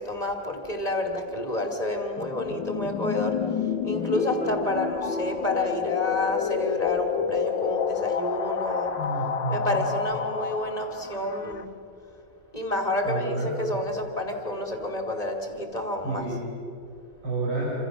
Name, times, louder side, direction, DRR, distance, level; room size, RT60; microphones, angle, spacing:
voice 1, 0.0-8.9 9.5-11.7 12.0-12.1 12.5-16.3, left 2 dB, 20° left, 2 dB, 2.7 m, -29 dB
sound 1, 2.2-11.6, left 7 dB, 85° left, 1.6 m, -30 dB
sound 2, 3.9-7.0, equal, 25° right, 3.2 m, -36 dB
voice 2, 9.0-9.8 13.0-13.6 16.0-16.4 17.2-17.7, right 2 dB, 75° right, -5 dB, 6.9 m, -29 dB
28.0 x 26.0 x 6.3 m, 2.5 s
omnidirectional pair, 2.0 m